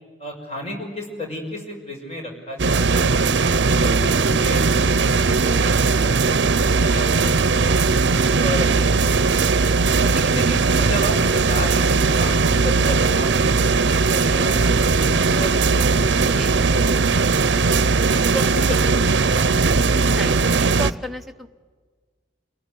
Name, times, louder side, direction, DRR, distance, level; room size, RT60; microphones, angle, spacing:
voice 1, 0.2-3.3 3.7-7.7 8.4-9.4 9.9-17.0 17.6-20.1, equal, 35° left, 2 dB, 6.1 m, -33 dB
sound 1, 2.6-20.9, right 4 dB, 75° right, 0.7 m, -18 dB
voice 2, 20.1-21.5, equal, ahead, 6 dB, 1.0 m, -33 dB
28.0 x 18.0 x 9.7 m, 1.5 s
head